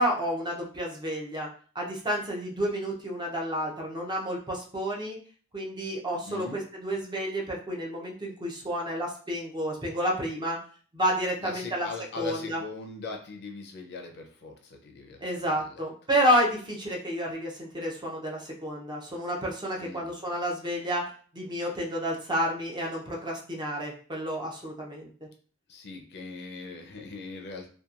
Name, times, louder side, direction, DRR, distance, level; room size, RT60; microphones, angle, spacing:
voice 1, 0.0-1.5 1.7-5.2 5.5-10.6 10.9-11.9 12.2-12.6 15.2-21.0 21.3-25.1, equal, 20° right, -1 dB, 0.5 m, -30 dB
voice 2, 6.3-6.6 11.4-15.8 19.8-20.1 25.7-27.7, left 4 dB, 50° left, 2 dB, 0.5 m, -40 dB
2.8 x 2.3 x 2.4 m, 0.43 s
head